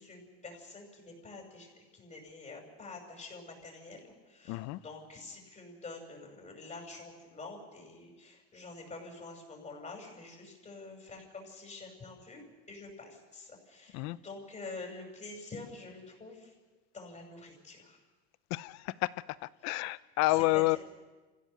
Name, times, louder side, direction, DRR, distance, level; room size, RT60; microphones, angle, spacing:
voice 1, 0.0-16.5 16.9-18.0 19.6-19.8 20.3-20.8, left 3 dB, 20° left, 2 dB, 6.1 m, -47 dB
voice 2, 4.5-4.8 13.9-14.2 18.5-19.1 19.6-20.8, left 21 dB, 60° left, 18 dB, 0.8 m, -29 dB
27.0 x 16.0 x 6.8 m, 1.3 s
supercardioid pair, 115°, 32 cm